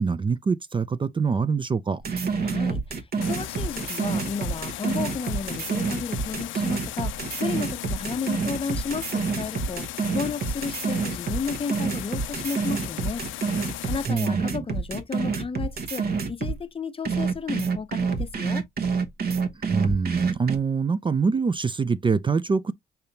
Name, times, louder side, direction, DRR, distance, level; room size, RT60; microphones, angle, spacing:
voice 1, 0.0-2.0 14.1-14.6 19.7-22.7, right 5 dB, 25° right, 0.4 m, -24 dB
sound 1, 2.0-16.6 17.0-20.6, right 5 dB, 50° right, 1.2 m, -27 dB
voice 2, 2.4-13.2 13.5-18.6, left 5 dB, 30° left, 0.6 m, -33 dB
sound 2, 3.2-14.1, left 15 dB, 85° left, 0.5 m, -37 dB
5.7 x 3.4 x 2.7 m
cardioid pair, 90°, 20 cm